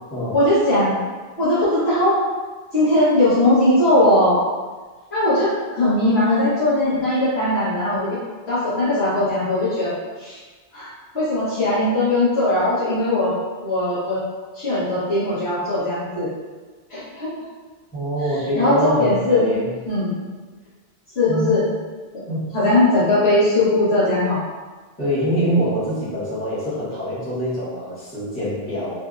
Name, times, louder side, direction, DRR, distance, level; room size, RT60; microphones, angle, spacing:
voice 1, 0.3-1.0 1.4-2.2 2.7-4.4 5.1-8.2 8.5-10.4 10.7-10.9 11.1-13.3 13.6-14.2 14.5-16.3 16.9-17.3 18.5-19.5 19.9-20.2 21.2-21.6 22.5-24.4, left 1 dB, 75° left, -12 dB, 1.8 m, -19 dB
voice 2, 17.9-19.7 21.3-21.6 22.3-22.5 25.0-28.9, equal, 10° left, -13 dB, 1.3 m, -24 dB
3.3 x 2.7 x 2.5 m, 1.3 s
omnidirectional pair, 1.1 m